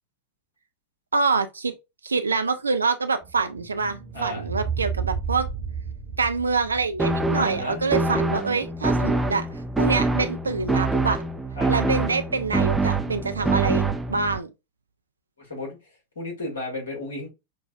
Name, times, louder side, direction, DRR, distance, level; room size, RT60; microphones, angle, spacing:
voice 1, 1.1-1.8 2.0-5.5 6.2-9.5 9.8-11.2 11.7-14.5, right 4 dB, 75° right, 0.4 m, -25 dB
sound 1, 3.2-8.3, right 6 dB, 40° right, 0.9 m, -33 dB
voice 2, 4.1-4.4 7.4-7.8 11.6-11.7 13.3-14.0 15.4-15.8 16.2-17.3, left 1 dB, 65° left, 1.9 m, -34 dB
sound 2, 7.0-14.4, right 3 dB, 5° right, 0.4 m, -25 dB
5.4 x 2.3 x 2.4 m
figure-of-eight pair, 90°, 0 cm